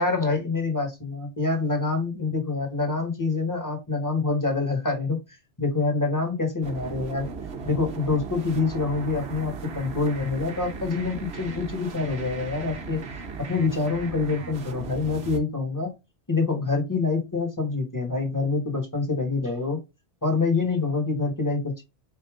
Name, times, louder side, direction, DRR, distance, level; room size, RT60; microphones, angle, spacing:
voice 1, 0.0-7.3 7.6-13.0 13.5-15.9 16.3-19.8 20.2-21.8, left 3 dB, 15° left, 3 dB, 1.2 m, -26 dB
sound 1, 6.6-15.4, right 4 dB, 70° right, 1.1 m, -37 dB
4.0 x 3.5 x 3.5 m, 0.24 s
omnidirectional pair, 1.2 m